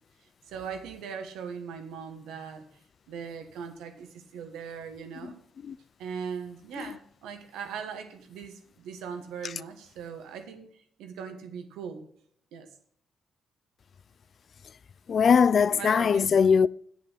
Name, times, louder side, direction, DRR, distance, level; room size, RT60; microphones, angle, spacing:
voice 1, 0.5-2.7 3.1-5.4 6.0-12.1 12.5-12.7 15.8-16.4, right 6 dB, 85° right, 1.3 m, -40 dB
voice 2, 15.1-16.7, left 6 dB, 55° left, 0.3 m, -20 dB
8.2 x 7.5 x 5.6 m
supercardioid pair, 55°, 0 cm